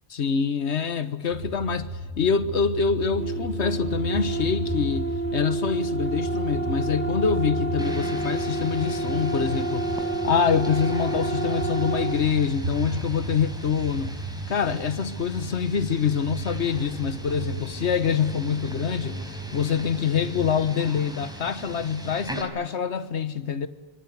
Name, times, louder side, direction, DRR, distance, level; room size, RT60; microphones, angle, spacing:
voice 1, 0.1-9.9 10.2-14.1 14.5-19.2 19.5-23.7, left 6 dB, 85° left, 1.5 m, -25 dB
sound 1, 1.3-20.8, right 1 dB, 65° right, 3.5 m, -35 dB
sound 2, 3.2-12.2, right 3 dB, 45° right, 1.8 m, -29 dB
sound 3, 7.8-22.4, right 1 dB, 5° right, 4.4 m, -39 dB
25.5 x 23.5 x 9.4 m
omnidirectional pair, 1.1 m